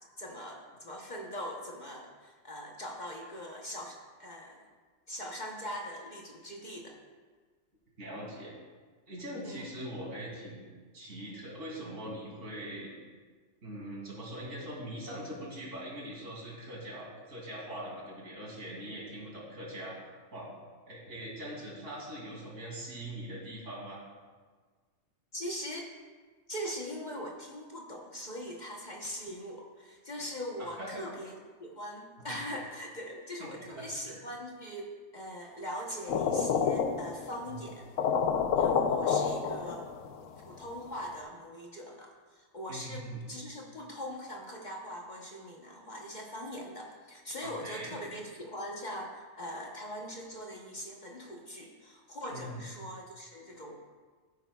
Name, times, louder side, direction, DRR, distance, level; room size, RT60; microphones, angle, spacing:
voice 1, 0.2-4.6 5.1-7.0 9.4-9.7 25.3-25.9 26.5-37.9 38.6-39.9 40.4-53.8, equal, 40° left, -1 dB, 1.0 m, -41 dB
voice 2, 8.0-8.5 9.1-10.6 10.9-12.9 13.6-19.9 20.3-20.5 20.9-24.0 30.6-31.0 32.2-32.4 33.4-33.5 33.8-34.2 37.5-37.6 42.7-43.2 47.4-48.0 52.3-52.6, right 1 dB, 75° right, -4 dB, 3.1 m, -42 dB
sound 1, 36.1-37.4 37.7-37.8 38.0-40.2, left 6 dB, 90° left, 1.1 m, -28 dB
15.0 x 8.4 x 2.3 m, 1.5 s
omnidirectional pair, 1.3 m